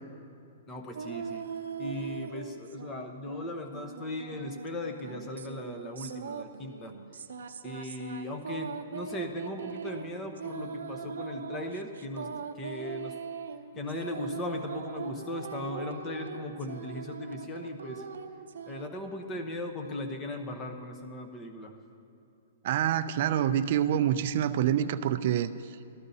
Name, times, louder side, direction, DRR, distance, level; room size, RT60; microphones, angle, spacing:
voice 1, 0.7-1.4 1.8-6.9 7.6-13.2 13.8-18.0 18.7-21.8, left 1 dB, 15° left, 5 dB, 0.8 m, -38 dB
sound 1, 0.9-3.0 3.3-19.0, right 6 dB, 90° right, 0.6 m, -40 dB
voice 2, 22.6-25.5, right 10 dB, 50° right, 11 dB, 0.4 m, -26 dB
18.0 x 13.0 x 2.8 m, 2.7 s
hypercardioid pair, 160°, 0 cm